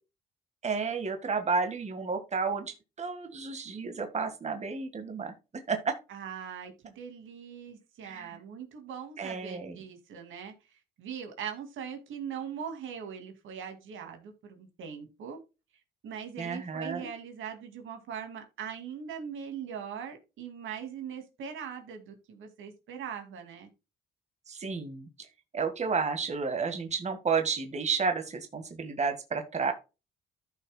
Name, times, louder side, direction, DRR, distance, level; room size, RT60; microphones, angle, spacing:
voice 1, 0.6-5.3 5.7-6.0 8.0-8.4 9.2-9.8 16.4-17.1 24.5-25.1 25.5-29.7, right 5 dB, 35° right, 6 dB, 1.6 m, -31 dB
voice 2, 6.1-10.5 11.0-15.4 16.0-23.7, right 7 dB, 80° right, 5 dB, 2.3 m, -41 dB
14.5 x 5.7 x 2.2 m, 0.28 s
cardioid pair, 90°, 20 cm